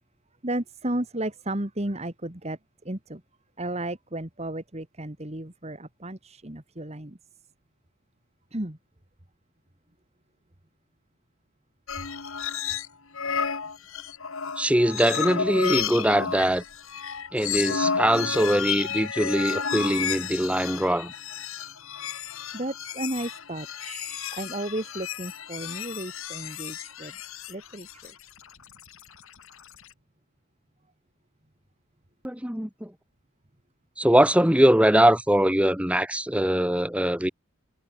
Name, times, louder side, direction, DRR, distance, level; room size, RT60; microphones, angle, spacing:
voice 1, 0.4-2.6 2.9-3.2 3.6-7.2 8.5-8.8 22.5-27.1 27.5-28.1, right 1 dB, 30° right, 1.8 m, -33 dB
sound 1, 11.9-12.9 13.1-29.9, left 7 dB, 65° left, 1.8 m, -32 dB
voice 2, 14.6-16.6 17.3-21.1 32.2-32.9 34.0-37.3, right 1 dB, 5° right, 1.4 m, -22 dB
head